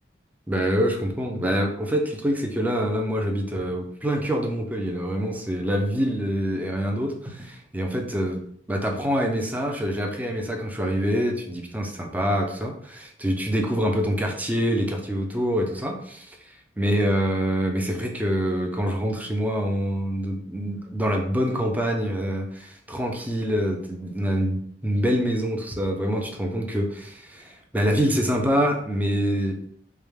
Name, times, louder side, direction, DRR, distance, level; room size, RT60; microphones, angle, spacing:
voice 1, 0.5-8.4 8.7-16.4 16.8-29.6, equal, 10° right, 2 dB, 0.6 m, -25 dB
4.8 x 2.3 x 3.4 m, 0.62 s
head